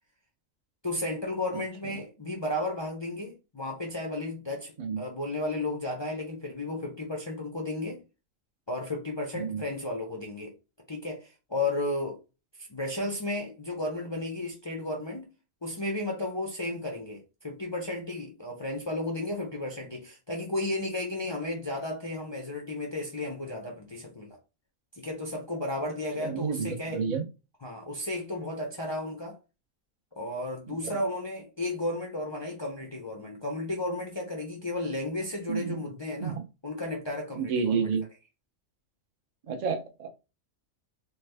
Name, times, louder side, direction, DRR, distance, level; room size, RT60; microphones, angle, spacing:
voice 1, 0.8-8.0 8.7-10.5 10.9-12.2 12.6-15.3 15.6-24.4 24.9-27.0 27.6-29.4 30.2-36.4 36.6-37.9, left 2 dB, 35° left, 0.4 m, -33 dB
voice 2, 26.2-27.3 30.7-31.0 35.5-35.8 36.2-36.4 37.4-38.0 39.5-40.1, right 6 dB, 60° right, 0.4 m, -30 dB
3.3 x 2.2 x 3.3 m
omnidirectional pair, 1.5 m